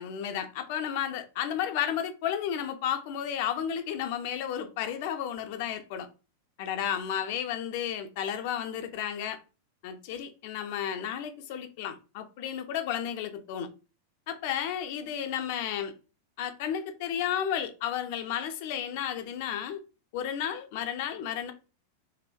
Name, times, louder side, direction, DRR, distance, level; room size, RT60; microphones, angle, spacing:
voice 1, 0.0-6.1 6.6-9.4 9.8-13.7 14.3-15.9 16.4-19.8 20.1-21.5, left 9 dB, 50° left, 0.4 m, -32 dB
2.6 x 2.1 x 2.4 m
figure-of-eight pair, 90°, 0 cm